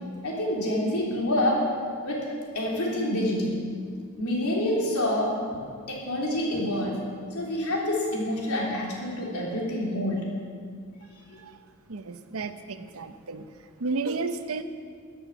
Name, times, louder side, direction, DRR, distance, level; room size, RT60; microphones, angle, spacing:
voice 1, 0.2-1.6 2.0-2.3 2.5-3.6 4.2-5.3 5.9-7.0 7.3-10.3, left 1 dB, 90° left, -2 dB, 3.3 m, -27 dB
voice 2, 11.9-13.5 13.8-14.6, right 3 dB, 75° right, 9 dB, 0.8 m, -32 dB
14.0 x 8.8 x 7.2 m, 2.1 s
head